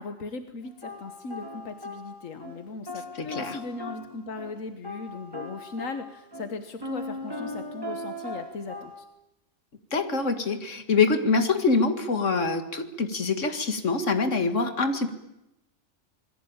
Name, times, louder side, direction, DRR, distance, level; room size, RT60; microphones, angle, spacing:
voice 1, 0.0-9.1, left 3 dB, 90° left, 8 dB, 1.7 m, -38 dB
sound 1, 0.8-2.6 2.9-4.6 4.8-9.0, left 1 dB, 15° right, 5.4 m, -38 dB
voice 2, 3.2-3.6 9.9-15.1, left 4 dB, 70° left, 8 dB, 2.4 m, -25 dB
26.5 x 21.0 x 8.9 m, 0.87 s
omnidirectional pair, 1.3 m